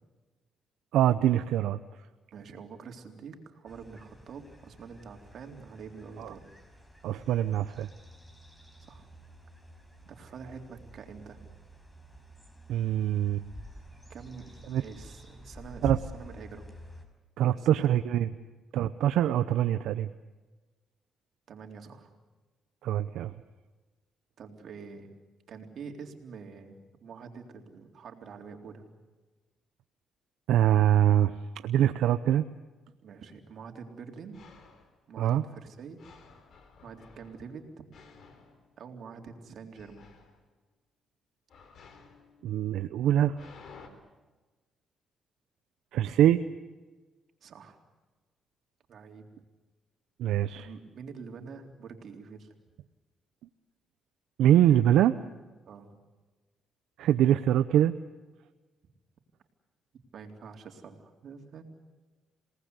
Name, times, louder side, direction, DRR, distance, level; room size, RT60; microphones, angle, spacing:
voice 1, 0.9-1.8 6.2-6.3 7.0-7.9 12.7-13.4 14.7-14.8 15.8-16.0 17.4-18.3 18.7-20.1 22.8-23.3 30.5-31.4 31.6-32.4 35.2-35.4 42.4-43.5 45.9-46.4 50.2-50.7 54.4-55.2 57.0-58.0, right 11 dB, 85° right, 10 dB, 0.8 m, -24 dB
voice 2, 2.3-6.4 8.8-9.1 10.0-11.5 14.1-15.9 16.1-16.7 17.4-17.9 21.5-22.1 24.4-25.1 25.5-28.8 33.0-34.4 35.1-36.0 36.8-37.9 38.8-40.1 47.4-47.8 48.9-49.3 50.5-52.5 55.7-55.9 60.1-61.6, right 5 dB, 60° right, 3 dB, 3.7 m, -46 dB
sound 1, 3.7-17.0, equal, 10° left, 5.2 m, -48 dB
sound 2, 34.3-35.0 36.0-39.3 39.7-40.4 41.5-43.9, left 5 dB, 60° left, 3.9 m, -55 dB
28.5 x 19.0 x 8.2 m, 1.3 s
cardioid pair, 90°, 0 cm